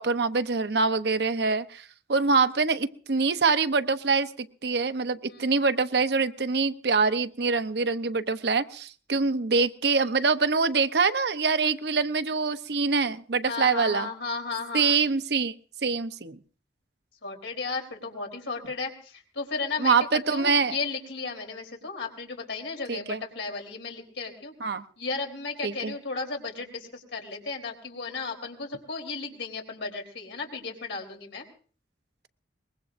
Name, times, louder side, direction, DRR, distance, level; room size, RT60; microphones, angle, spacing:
voice 1, 0.0-1.8 2.1-14.1 14.7-15.5 15.8-16.4 19.8-20.8 22.9-23.2 24.6-24.8 25.6-25.9, right 4 dB, 65° right, 10 dB, 0.7 m, -25 dB
voice 2, 13.5-15.0 17.2-24.5 25.0-31.4, left 4 dB, 90° left, 2 dB, 3.6 m, -34 dB
23.0 x 21.0 x 2.6 m, 0.42 s
head